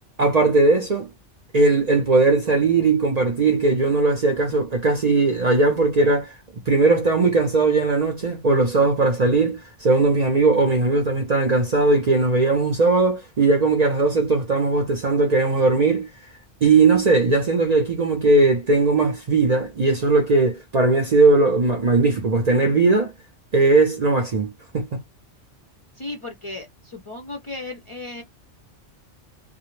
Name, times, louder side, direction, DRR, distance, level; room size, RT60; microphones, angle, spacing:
voice 1, 0.2-1.1 1.5-6.3 6.7-16.1 16.6-23.1 23.5-24.9, right 3 dB, 45° right, 0.5 m, -19 dB
voice 2, 26.0-28.2, left 2 dB, 40° left, 0.4 m, -35 dB
2.3 x 2.0 x 3.0 m
omnidirectional pair, 1.2 m